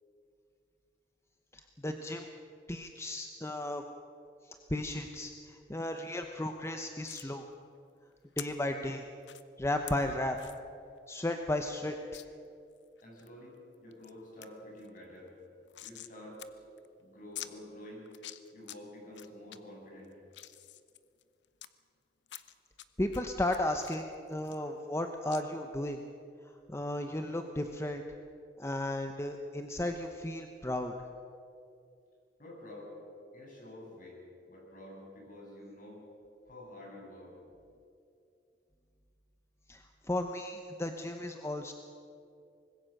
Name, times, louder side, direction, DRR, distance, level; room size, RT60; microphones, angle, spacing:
voice 1, 1.5-2.3 2.7-3.8 4.4-7.5 8.4-9.1 9.6-10.4 11.1-12.2 23.0-26.0 26.7-28.0 28.6-31.1 39.7-41.7, left 1 dB, 15° left, 5 dB, 1.0 m, -34 dB
sound 1, 7.0-7.3 8.4-8.5 9.2-9.4 9.9-10.0 10.4-10.6 11.0-11.1 11.3-11.4 12.1-12.3 12.8-13.3 13.7-14.1 14.4-14.5 14.8-16.1 16.4-16.5 16.8-16.9 17.4-17.5 18.1-18.8 19.1-19.6 20.0-21.7 22.3-22.9 23.1-25.0 25.3-25.4, left 13 dB, 85° left, 0.8 m, -46 dB
voice 2, 13.0-15.3 15.8-16.4 17.0-18.1 18.5-20.2 32.4-33.0 33.3-34.2 34.5-36.0 36.5-37.4, left 1 dB, 50° left, -2 dB, 7.8 m, -49 dB
24.5 x 20.5 x 6.7 m, 2.5 s
head